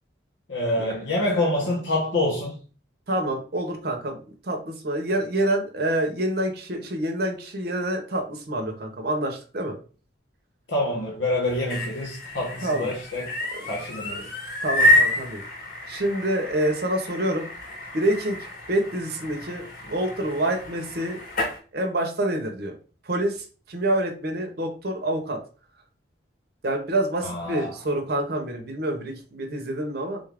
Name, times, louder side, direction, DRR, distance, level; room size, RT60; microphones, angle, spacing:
voice 1, 0.5-2.6 10.7-13.3 13.6-14.3 27.2-27.7, left 1 dB, 80° left, 1.0 m, -26 dB
voice 2, 3.1-9.8 12.6-12.9 13.5-13.7 14.1-14.3 14.6-15.4 15.9-17.5 17.9-18.4 18.7-21.2 21.7-22.8 23.0-25.4 26.6-30.2, right 1 dB, 55° right, 0.7 m, -27 dB
sound 1, 11.4-21.6, left 1 dB, 50° left, 1.1 m, -28 dB
3.6 x 2.4 x 3.3 m
head